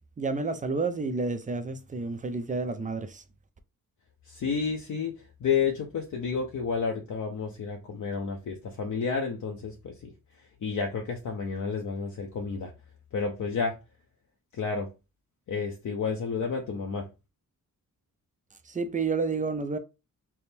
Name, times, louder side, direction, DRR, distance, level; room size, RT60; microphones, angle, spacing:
voice 1, 0.2-3.2 18.7-19.8, right 4 dB, 25° right, 0.4 m, -30 dB
voice 2, 4.3-5.1 5.4-9.9 10.6-12.7 13.1-13.8 14.5-14.9 15.5-17.1, left 5 dB, 60° left, 0.6 m, -30 dB
3.5 x 2.0 x 4.2 m
wide cardioid pair, 125°, 34 cm